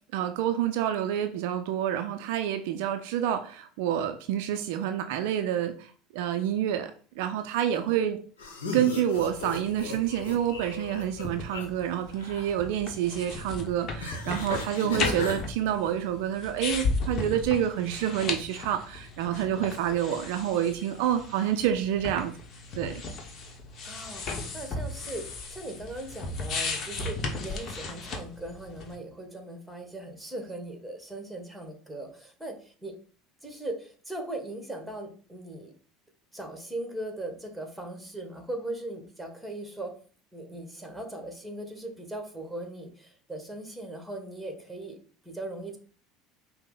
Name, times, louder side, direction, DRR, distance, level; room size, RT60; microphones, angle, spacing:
voice 1, 0.1-8.2 8.7-22.3 22.8-22.9, right 10 dB, 70° right, 7 dB, 0.4 m, -28 dB
sound 1, 8.4-11.7 12.0-12.5 14.0-15.4, left 2 dB, 85° left, 0.8 m, -36 dB
sound 2, 9.1-28.9, left 3 dB, 45° left, 0.9 m, -36 dB
voice 2, 14.7-15.2 23.8-32.9 33.4-35.7 36.3-39.9 40.3-45.0 45.2-45.8, right 1 dB, 5° right, 3 dB, 1.3 m, -39 dB
5.5 x 2.1 x 3.8 m, 0.43 s
hypercardioid pair, 80°, 0 cm